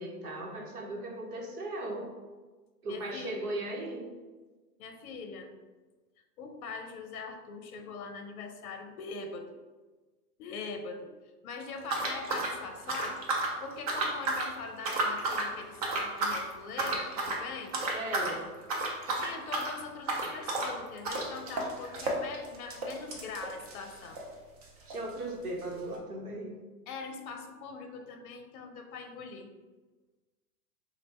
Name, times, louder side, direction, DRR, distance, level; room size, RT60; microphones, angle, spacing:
voice 1, 0.0-2.1 2.8-4.1 17.8-18.4 24.9-26.5, right 1 dB, 65° right, -1 dB, 1.2 m, -37 dB
voice 2, 2.9-3.6 4.8-5.5 6.4-9.5 10.4-11.1 11.4-17.8 19.1-24.2 26.9-29.5, left 4 dB, 60° left, 5 dB, 0.7 m, -42 dB
sound 1, 11.8-13.6 13.9-14.5 14.8-15.5 15.8-16.4 16.8-17.4 17.7-18.4 18.6-24.3 24.6-24.7 24.9-25.0 25.7-25.8, right 2 dB, 25° right, 0.3 m, -32 dB
3.2 x 2.5 x 4.1 m, 1.3 s
hypercardioid pair, 115°, 48 cm